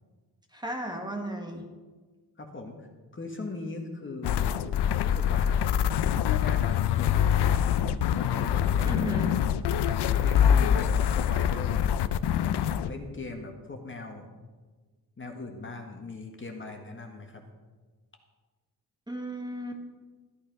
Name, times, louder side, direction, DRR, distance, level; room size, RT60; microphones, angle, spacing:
voice 1, 0.5-1.6 8.8-9.3 19.1-19.8, right 1 dB, 10° right, 2 dB, 1.6 m, -35 dB
voice 2, 2.4-2.9 3.1-5.6 6.0-7.8 8.1-9.5 10.2-11.9 12.2-14.3 15.2-17.4, left 3 dB, 30° left, 3 dB, 1.7 m, -40 dB
sound 1, 4.2-12.9, left 9 dB, 80° left, 0.6 m, -25 dB
13.5 x 9.8 x 5.3 m, 1.4 s
cardioid pair, 110°, 40 cm